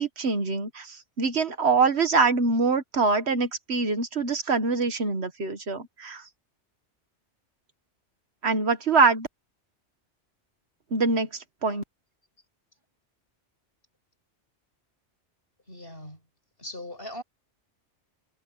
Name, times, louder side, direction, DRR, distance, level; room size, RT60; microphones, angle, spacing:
voice 1, 0.0-6.2 8.4-9.3 10.9-11.3 11.6-11.8, right 4 dB, 65° right, 1.6 m, -24 dB
voice 2, 15.7-16.2 16.6-17.2, left 1 dB, 55° left, 7.4 m, -39 dB
omnidirectional pair, 1.2 m